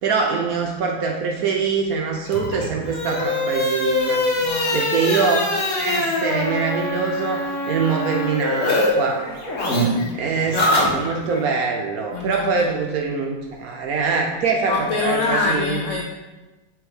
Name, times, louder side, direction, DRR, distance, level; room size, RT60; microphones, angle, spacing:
voice 1, 0.0-4.2 4.7-9.3 10.1-15.8, right 5 dB, 70° right, 2 dB, 0.9 m, -24 dB
sound 1, 2.3-8.9 9.2-11.4, left 1 dB, 45° left, 1.4 m, -23 dB
voice 2, 4.3-4.8 9.7-10.0 12.1-12.7 14.7-16.0, left 3 dB, 75° left, -1 dB, 0.7 m, -25 dB
7.9 x 3.4 x 3.5 m, 1.1 s
omnidirectional pair, 1.9 m